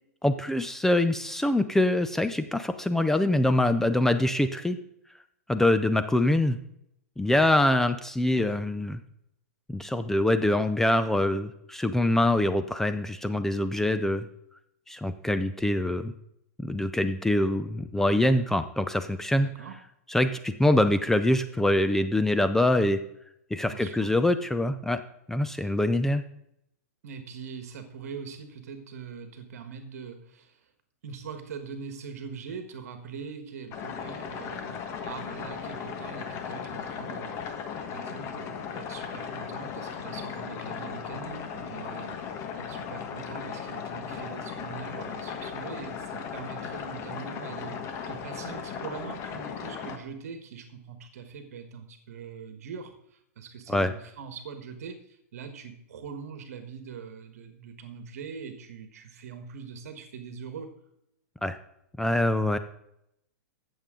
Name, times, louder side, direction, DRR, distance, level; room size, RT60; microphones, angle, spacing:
voice 1, 0.2-4.8 5.5-6.6 7.2-9.0 9.7-14.3 14.9-16.1 16.6-19.5 20.1-23.0 23.5-25.0 25.3-26.2 53.7-53.9 61.4-61.6 62.0-62.6, left 1 dB, 5° left, 10 dB, 0.5 m, -24 dB
voice 2, 19.3-19.7 23.6-24.1 25.6-25.7 27.0-30.7 31.0-34.8 35.0-37.5 37.9-42.2 42.6-47.8 48.1-60.7, right 6 dB, 70° right, 7 dB, 1.4 m, -42 dB
sound 1, 33.7-50.0, left 7 dB, 35° left, 1.4 m, -37 dB
15.0 x 7.1 x 3.8 m, 0.77 s
hypercardioid pair, 130°, 8 cm